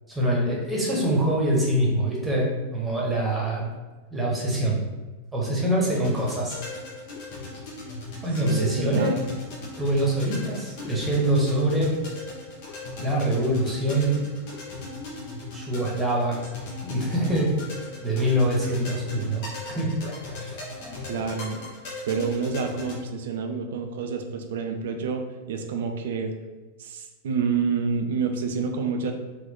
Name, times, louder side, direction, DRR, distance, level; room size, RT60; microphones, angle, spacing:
voice 1, 0.1-3.7 4.1-4.8 5.3-6.6 8.2-9.1 9.8-11.9 13.0-14.2 15.5-16.4 16.8-19.9 20.4-20.6, right 1 dB, 10° right, -4 dB, 1.2 m, -24 dB
sound 1, 5.8-23.0, left 2 dB, 45° left, 1.1 m, -38 dB
voice 2, 8.4-9.2 21.0-21.6 22.1-26.3 26.8-29.1, right 5 dB, 55° right, 5 dB, 0.5 m, -28 dB
3.9 x 2.5 x 3.6 m, 1.3 s
figure-of-eight pair, 90°, 0 cm